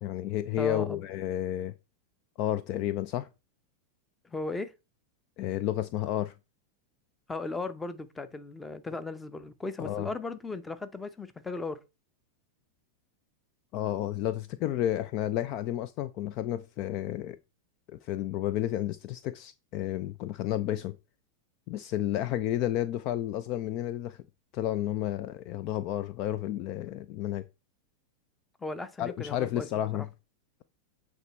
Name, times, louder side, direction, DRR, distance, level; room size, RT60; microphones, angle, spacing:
voice 1, 0.0-1.7 2.4-3.3 5.4-6.3 9.8-10.1 13.7-17.4 17.9-21.0 21.7-24.2 24.5-27.5 29.0-30.1, left 12 dB, 40° left, 0.4 m, -31 dB
voice 2, 0.6-1.0 4.2-4.7 7.3-11.8 28.6-29.7, left 3 dB, 10° left, 0.8 m, -36 dB
8.1 x 3.7 x 4.2 m
figure-of-eight pair, 90°, 0 cm